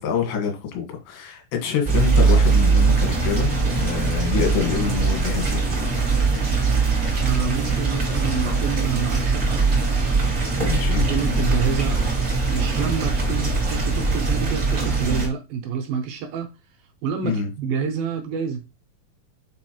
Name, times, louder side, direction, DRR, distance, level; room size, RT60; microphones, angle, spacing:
voice 1, 0.0-6.0 10.5-11.1 17.2-17.5, left 7 dB, 90° left, 3.6 m, -26 dB
sound 1, 1.8-15.3, right 4 dB, 55° right, 0.8 m, -21 dB
voice 2, 7.2-9.6 10.9-12.0 12.5-16.5 17.0-18.6, right 7 dB, 75° right, 2.3 m, -28 dB
8.5 x 4.2 x 3.0 m
omnidirectional pair, 4.8 m